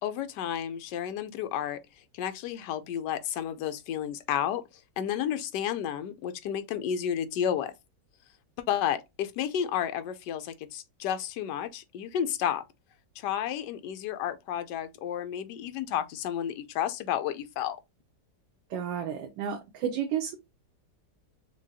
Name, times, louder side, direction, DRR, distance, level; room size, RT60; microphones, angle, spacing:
voice 1, 0.0-1.8 2.1-4.6 5.0-7.7 8.7-12.6 13.2-17.8, left 9 dB, 75° left, 1.2 m, -31 dB
voice 2, 18.7-20.4, right 8 dB, 90° right, 1.4 m, -32 dB
6.0 x 2.2 x 2.6 m
omnidirectional pair, 1.9 m